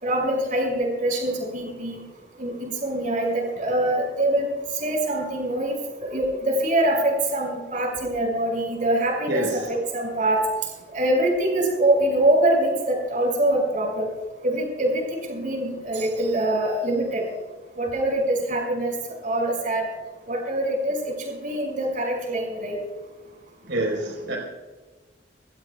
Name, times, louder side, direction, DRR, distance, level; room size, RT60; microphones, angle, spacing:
voice 1, 0.0-2.0 2.4-4.5 4.7-10.4 10.9-14.1 14.4-17.2 17.8-18.9 19.2-19.9 20.3-22.8, right 1 dB, 45° right, 1 dB, 5.7 m, -24 dB
voice 2, 9.3-9.7 23.7-24.4, right 1 dB, 85° right, 0 dB, 4.3 m, -26 dB
24.5 x 17.0 x 2.3 m, 1.3 s
head